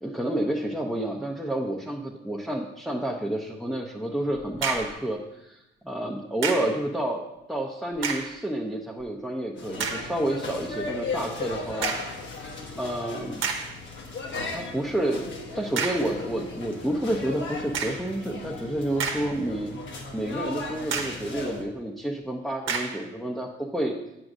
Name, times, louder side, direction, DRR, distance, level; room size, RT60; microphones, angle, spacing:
voice 1, 0.0-11.9 12.7-13.4 14.5-15.3 15.5-19.7 20.1-23.9, right 1 dB, ahead, -2 dB, 0.7 m, -29 dB
sound 1, 4.5-5.0 6.4-6.8 7.9-8.4 9.0-9.1 9.8-10.1 11.8-12.2 12.9-13.0 13.4-13.8 15.8-16.2 17.7-18.1 18.7-19.6 20.0-20.1 20.9-21.3 22.7-23.1, right 5 dB, 80° right, 0.9 m, -30 dB
sound 2, 9.6-21.6, left 3 dB, 70° left, 1.2 m, -37 dB
8.4 x 6.1 x 2.6 m, 0.91 s
cardioid pair, 90°, 20 cm